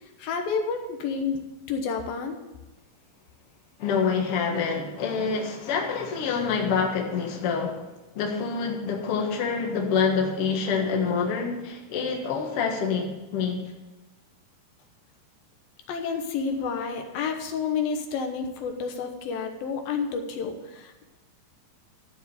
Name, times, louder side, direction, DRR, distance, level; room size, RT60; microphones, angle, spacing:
voice 1, 0.2-1.4 1.7-2.4 15.9-21.0, left 5 dB, 85° left, 4 dB, 2.8 m, -30 dB
voice 2, 3.8-7.9 8.1-13.6, left 5 dB, 50° left, 1 dB, 2.0 m, -26 dB
13.0 x 5.0 x 8.1 m, 1.1 s
omnidirectional pair, 4.1 m